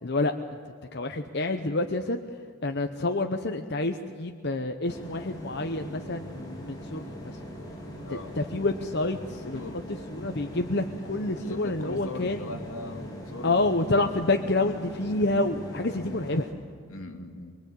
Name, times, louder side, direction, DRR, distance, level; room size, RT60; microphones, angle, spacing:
voice 1, 0.0-0.3 0.9-2.2 2.6-7.4 8.1-9.6 10.1-12.5 13.4-16.5, left 2 dB, 50° left, 5 dB, 0.9 m, -28 dB
sound 1, 4.9-16.5, equal, 20° left, 3.8 m, -41 dB
voice 2, 9.5-9.9 11.4-13.7 14.0-14.2 14.6-14.7 15.9-16.2 16.9-17.6, left 2 dB, 75° left, 4 dB, 2.6 m, -40 dB
24.0 x 24.0 x 8.5 m, 2.2 s
head